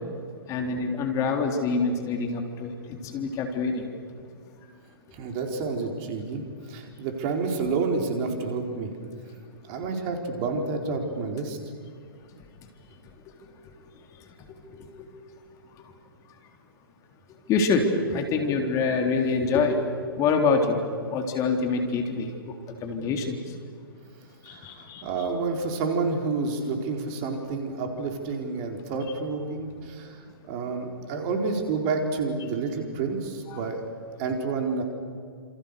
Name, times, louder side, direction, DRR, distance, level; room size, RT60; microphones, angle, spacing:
voice 1, 0.5-3.8 14.7-15.1 17.5-19.8 20.2-20.8 21.1-22.5 22.8-23.4 24.4-25.1 33.5-33.6, left 4 dB, 25° left, 4 dB, 3.4 m, -26 dB
voice 2, 5.1-8.9 9.7-11.6 24.5-33.8 34.2-34.8, right 4 dB, 35° right, 3 dB, 4.4 m, -29 dB
30.0 x 28.0 x 6.8 m, 2.2 s
figure-of-eight pair, 120°, 12 cm